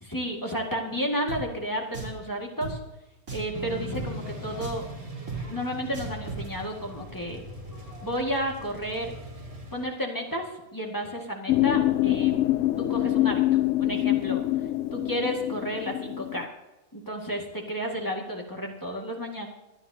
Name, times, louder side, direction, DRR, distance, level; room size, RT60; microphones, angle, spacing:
voice 1, 0.0-2.8 3.3-4.8 5.5-7.4 8.0-9.1 9.7-12.3 12.8-14.4 14.9-16.5 16.9-19.5, equal, 15° left, -1 dB, 1.9 m, -32 dB
Drum, 1.3-1.4 1.9-2.2 2.6-2.7 3.3-3.5 3.9-4.1 4.6-4.9 5.3-5.4 5.9-6.5, right 5 dB, 65° right, 3.6 m, -36 dB
sound 1, 3.5-9.9, equal, 25° right, 1.8 m, -40 dB
sound 2, 11.5-16.4, left 14 dB, 70° left, 0.8 m, -25 dB
25.5 x 9.3 x 2.8 m, 1.0 s
omnidirectional pair, 1.5 m